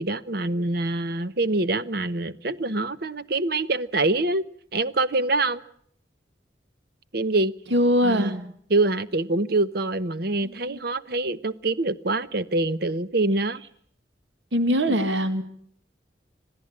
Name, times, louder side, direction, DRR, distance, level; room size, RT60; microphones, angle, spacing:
voice 1, 0.0-4.4 4.7-5.6 7.1-7.5 8.0-8.4 8.7-13.6 14.9-15.0, right 2 dB, 55° right, 14 dB, 1.0 m, -25 dB
voice 2, 7.7-8.4 10.4-10.8 14.5-15.4, equal, 90° right, 9 dB, 2.1 m, -22 dB
26.0 x 16.0 x 8.8 m, 0.63 s
head